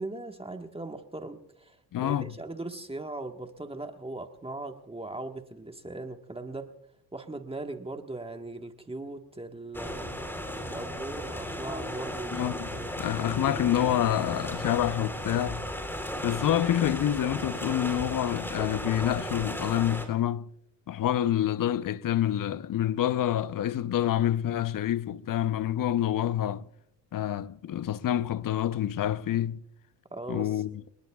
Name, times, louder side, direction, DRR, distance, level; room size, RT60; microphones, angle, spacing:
voice 1, 0.0-6.7 7.1-10.1 10.7-12.5 30.1-30.6, right 2 dB, 15° right, 1.4 m, -39 dB
voice 2, 1.9-2.3 12.3-12.7 13.0-15.7 16.2-20.5 20.9-26.7 27.1-29.6 30.3-30.7, left 11 dB, 45° left, 0.8 m, -27 dB
sound 1, 9.7-20.1, equal, 5° left, 3.7 m, -35 dB
30.0 x 20.0 x 2.4 m
cardioid pair, 90°, 44 cm